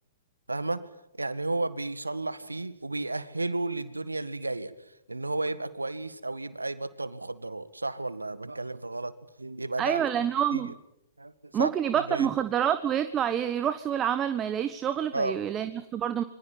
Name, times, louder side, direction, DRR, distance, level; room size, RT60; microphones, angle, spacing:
voice 1, 0.5-0.9 1.1-10.0 10.5-10.6 11.2-11.7 12.1-12.3 15.1-15.4, right 2 dB, 85° right, 14 dB, 1.9 m, -33 dB
voice 2, 9.8-10.7 11.5-16.2, right 9 dB, 20° right, 11 dB, 1.3 m, -27 dB
26.5 x 24.5 x 9.1 m, 0.84 s
figure-of-eight pair, 110°, 0 cm